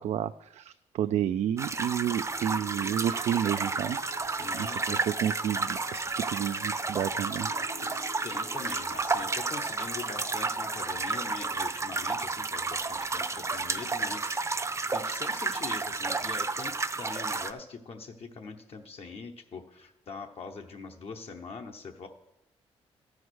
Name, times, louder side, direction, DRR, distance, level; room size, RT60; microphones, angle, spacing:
voice 1, 0.0-4.0 4.5-7.5, right 10 dB, 70° right, 10 dB, 0.4 m, -31 dB
sound 1, 1.6-17.5, right 3 dB, 25° right, 0.6 m, -32 dB
sound 2, 2.3-11.6, left 3 dB, 85° left, 2.1 m, -48 dB
voice 2, 4.3-5.0 7.8-22.1, left 4 dB, 55° left, 3 dB, 1.0 m, -43 dB
13.0 x 4.8 x 6.2 m, 0.86 s
supercardioid pair, 65°, 12 cm